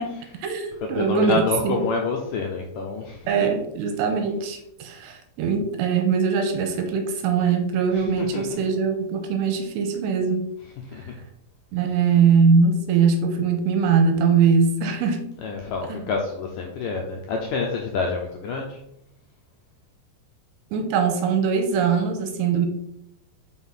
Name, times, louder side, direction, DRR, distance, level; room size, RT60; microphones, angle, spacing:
voice 1, 0.0-1.8 3.3-10.5 11.0-11.1 11.7-15.3 15.9-16.1 20.7-22.7, right 5 dB, 80° right, 6 dB, 2.9 m, -22 dB
voice 2, 0.8-3.3 7.9-8.4 10.9-11.2 15.4-18.8, left 4 dB, 85° left, 1 dB, 1.9 m, -28 dB
6.2 x 5.9 x 5.7 m, 0.77 s
omnidirectional pair, 5.1 m